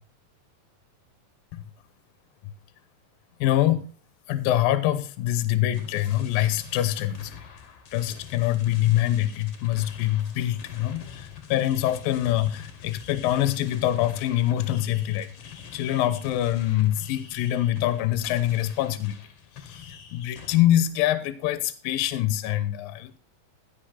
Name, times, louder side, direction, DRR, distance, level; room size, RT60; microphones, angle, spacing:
voice 1, 3.4-3.9 4.3-7.4 7.9-15.3 15.7-19.2 19.6-19.8 20.1-23.2, left 13 dB, 80° left, 2.6 m, -25 dB
sound 1, 5.7-20.6, left 8 dB, 50° left, 2.2 m, -45 dB
15.5 x 5.7 x 5.8 m
omnidirectional pair, 4.2 m